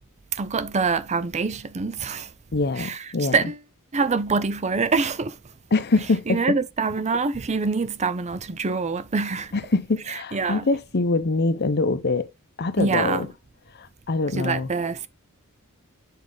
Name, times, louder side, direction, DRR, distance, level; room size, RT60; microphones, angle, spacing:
voice 1, 0.3-2.3 2.8-3.0 3.3-3.6 3.9-5.4 6.3-9.5 10.1-10.7 12.8-13.3 14.4-15.1, right 4 dB, 30° right, 0.5 m, -25 dB
voice 2, 2.5-3.4 5.7-6.6 9.5-12.3 12.6-13.3 13.7-14.7, left 3 dB, 50° left, 0.7 m, -24 dB
7.5 x 4.6 x 3.9 m
head